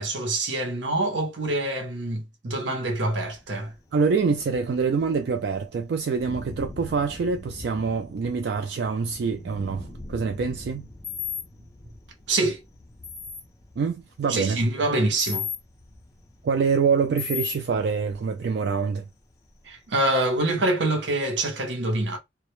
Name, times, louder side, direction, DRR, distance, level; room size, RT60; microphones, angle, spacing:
voice 1, 0.0-3.7 12.3-12.6 14.3-15.5 19.7-22.2, right 2 dB, 85° right, 0.7 m, -25 dB
Thunder, 2.8-20.4, left 1 dB, 20° left, 0.4 m, -46 dB
voice 2, 3.9-10.9 13.8-14.6 16.4-19.0, right 5 dB, 65° right, 0.3 m, -25 dB
sound 1, 11.0-11.4 13.0-13.4 15.2-15.6 17.2-17.5, left 7 dB, ahead, 0.9 m, -31 dB
2.1 x 2.0 x 2.9 m
head